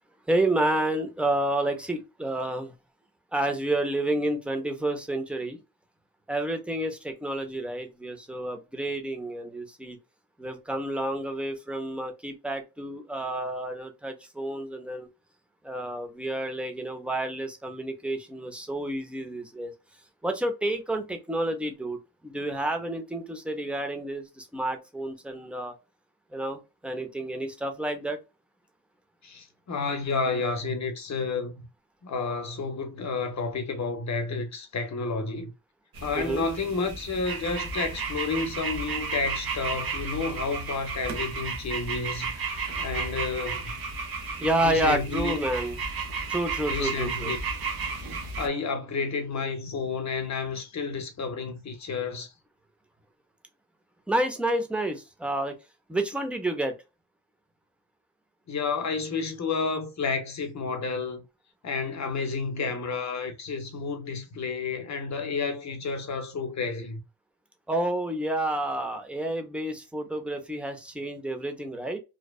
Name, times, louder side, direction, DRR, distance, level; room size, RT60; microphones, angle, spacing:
voice 1, 0.3-2.7 3.3-5.6 6.3-10.0 10.4-15.1 15.6-19.7 20.2-25.7 26.3-28.2 36.1-36.5 44.4-45.8 46.3-47.3 54.1-55.5 55.9-56.7 67.7-72.0, right 1 dB, 5° right, 0.4 m, -29 dB
voice 2, 29.2-31.5 32.0-35.5 36.0-43.7 44.6-45.4 46.7-47.4 48.4-52.3 58.5-61.2 61.6-67.0, left 4 dB, 45° left, 0.6 m, -31 dB
sound 1, 35.9-48.5, right 4 dB, 70° right, 0.8 m, -33 dB
2.7 x 2.1 x 2.3 m
wide cardioid pair, 140°, 38 cm